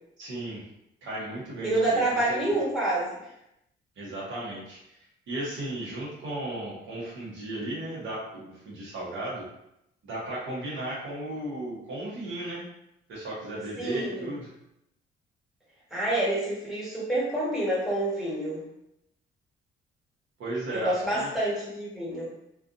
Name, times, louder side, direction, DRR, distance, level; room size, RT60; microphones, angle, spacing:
voice 1, 0.2-0.6 1.0-2.6 4.0-4.8 5.3-9.4 10.0-12.6 13.1-14.5 20.4-21.3, right 1 dB, 75° right, -6 dB, 1.0 m, -35 dB
voice 2, 1.6-3.1 13.8-14.4 15.9-18.6 20.7-22.3, right 1 dB, ahead, -8 dB, 1.3 m, -27 dB
2.5 x 2.4 x 2.5 m, 0.83 s
cardioid pair, 90°, 20 cm